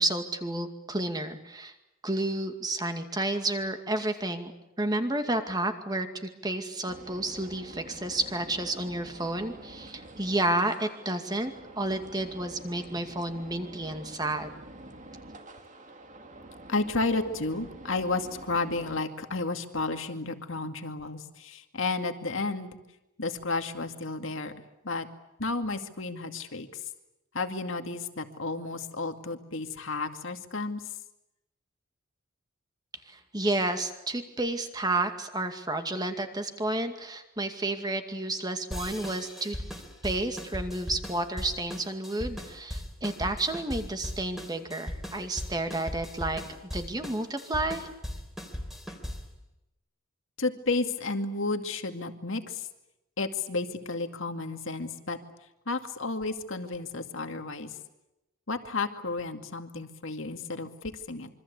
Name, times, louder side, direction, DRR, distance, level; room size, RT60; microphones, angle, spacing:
voice 1, 0.0-1.7 2.0-4.5 4.8-14.5 33.1-39.6 40.0-46.4 46.7-47.9, right 2 dB, 20° right, 6 dB, 2.3 m, -31 dB
sound 1, 6.9-19.0, right 1 dB, 35° right, 2.2 m, -47 dB
voice 2, 16.7-22.8 23.2-24.5 24.8-25.1 25.4-26.8 27.3-30.9 50.4-52.7 53.2-55.2 55.7-57.8 58.5-61.3, left 3 dB, 60° left, 6 dB, 2.2 m, -32 dB
sound 2, 38.7-49.4, equal, ahead, 3.5 m, -38 dB
26.5 x 24.5 x 8.4 m, 0.94 s
head